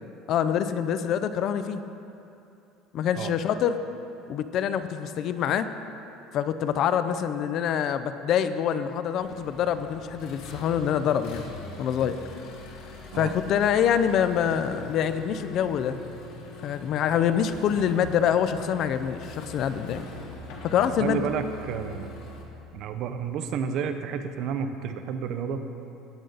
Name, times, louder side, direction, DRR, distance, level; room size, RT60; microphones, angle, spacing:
voice 1, 0.3-1.8 2.9-3.8 4.3-5.7 6.3-11.4 11.8-12.2 13.1-16.0 16.6-20.1 20.6-21.2, left 8 dB, 40° left, 11 dB, 0.4 m, -25 dB
Accelerating revving vroom, 9.2-22.4, left 3 dB, 75° left, 1.7 m, -42 dB
voice 2, 20.8-22.1 22.7-25.6, right 7 dB, 45° right, 8 dB, 0.6 m, -31 dB
17.5 x 6.6 x 3.9 m, 2.8 s
cardioid pair, 175°, 0 cm